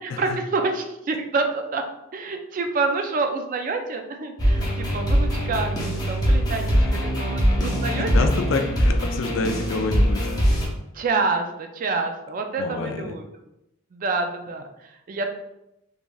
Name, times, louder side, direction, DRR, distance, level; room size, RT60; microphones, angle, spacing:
voice 1, 0.0-1.8 2.1-8.1 10.9-13.3 13.9-15.3, right 3 dB, 40° right, 5 dB, 0.3 m, -27 dB
sound 1, 4.4-10.7, equal, 20° left, 0.6 m, -22 dB
voice 2, 6.7-7.0 7.6-10.2 12.6-13.1, left 3 dB, 70° left, 5 dB, 0.4 m, -28 dB
3.2 x 2.5 x 2.2 m, 0.86 s
head